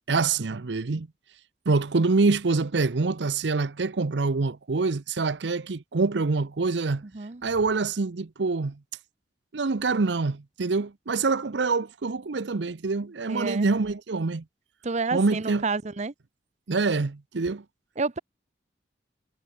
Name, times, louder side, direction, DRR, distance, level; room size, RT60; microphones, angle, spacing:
voice 1, 0.1-1.1 1.7-7.0 7.4-8.8 9.5-14.4 15.1-15.6 16.7-17.6, right 3 dB, 75° right, 0.7 m, -25 dB
voice 2, 13.3-13.7 14.8-16.1 18.0-18.2, right 4 dB, 40° right, 0.8 m, -29 dB
head